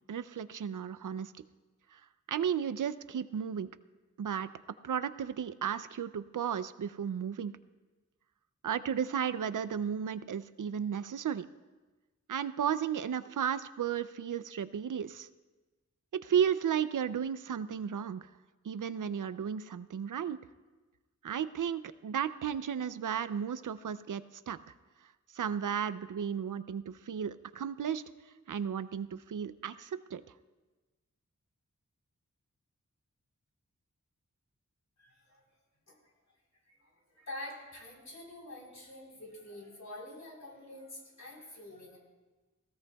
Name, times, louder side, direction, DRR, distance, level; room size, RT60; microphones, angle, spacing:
voice 1, 0.1-1.3 1.9-2.0 2.3-3.7 4.2-4.5 4.8-7.5 8.6-11.5 12.3-15.3 16.2-18.3 18.6-20.4 21.2-24.6 25.3-28.0 28.5-30.2, right 8 dB, 90° right, 14 dB, 0.5 m, -34 dB
voice 2, 35.0-35.4 35.9-36.1 36.7-42.0, left 1 dB, 65° left, -2 dB, 4.0 m, -47 dB
19.0 x 16.5 x 2.3 m, 1.2 s
wide cardioid pair, 75°, 30 cm